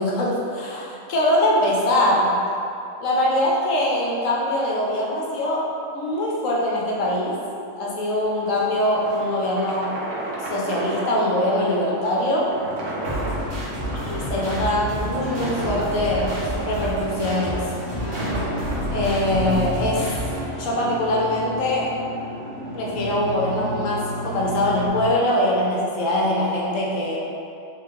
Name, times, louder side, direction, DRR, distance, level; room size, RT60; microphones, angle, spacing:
voice 1, 0.0-2.3 3.0-5.7 5.9-7.4 7.7-9.9 10.5-12.5 14.1-17.6 18.9-20.1 20.6-21.9 22.7-27.2, left 1 dB, 90° left, -3 dB, 1.1 m, -23 dB
sound 1, 8.2-19.5, right 2 dB, 80° right, 1.1 m, -34 dB
sound 2, 12.5-24.9, left 1 dB, 35° right, 1.3 m, -33 dB
sound 3, 13.0-20.4, equal, 55° right, 1.6 m, -30 dB
3.8 x 3.7 x 2.8 m, 2.6 s
omnidirectional pair, 1.3 m